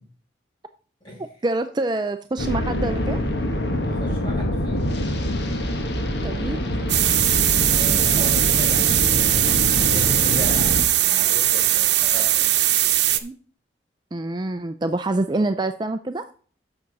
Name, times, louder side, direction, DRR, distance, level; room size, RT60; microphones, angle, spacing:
voice 1, 1.2-3.2 6.2-6.7 13.2-13.3 14.1-16.3, right 2 dB, 25° right, 9 dB, 0.4 m, -26 dB
sound 1, 2.4-10.8, left 1 dB, 70° left, 1.4 m, -25 dB
voice 2, 3.8-4.8 7.7-12.5, left 1 dB, 25° left, -3 dB, 5.4 m, -38 dB
sound 2, 6.9-13.2, right 13 dB, 75° right, 0.8 m, -20 dB
9.8 x 6.9 x 4.0 m, 0.43 s
head